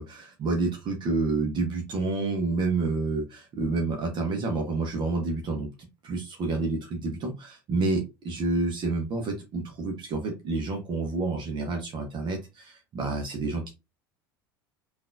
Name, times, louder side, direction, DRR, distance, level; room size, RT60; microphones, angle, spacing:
voice 1, 0.0-13.7, right 3 dB, 35° right, 3 dB, 0.9 m, -29 dB
5.7 x 2.5 x 2.5 m, 0.26 s
figure-of-eight pair, 70°, 13 cm